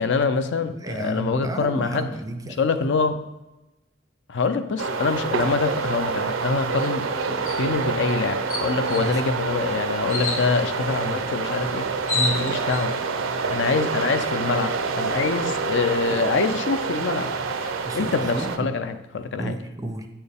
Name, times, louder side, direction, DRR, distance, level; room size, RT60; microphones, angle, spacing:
voice 1, 0.0-2.1 2.6-3.2 4.3-11.9 12.3-13.0 13.5-17.3 17.6-19.5, left 4 dB, 60° left, 9 dB, 0.4 m, -25 dB
voice 2, 0.7-2.6 9.0-9.2 11.0-11.3 12.1-12.5 16.1-16.2 17.8-18.8 19.4-20.1, right 1 dB, 15° right, 6 dB, 0.5 m, -31 dB
sound 1, 4.8-18.6, right 4 dB, 80° right, 0.6 m, -27 dB
sound 2, 7.5-7.7 8.1-8.2 8.5-9.0 10.1-10.4 11.6-11.7 11.9-12.8, left 3 dB, 90° left, 1.1 m, -27 dB
8.6 x 4.4 x 3.4 m, 1.0 s
head